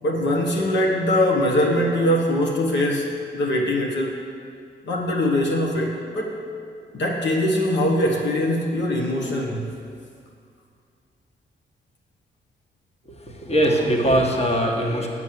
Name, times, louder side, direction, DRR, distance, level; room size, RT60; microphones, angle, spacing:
voice 1, 0.0-4.1 4.8-6.4 6.9-9.6, left 1 dB, 70° left, -2 dB, 1.2 m, -22 dB
voice 2, 13.3-15.1, right 1 dB, 35° left, 0 dB, 1.5 m, -21 dB
7.3 x 6.3 x 7.5 m, 2.3 s
cardioid pair, 75°, 19 cm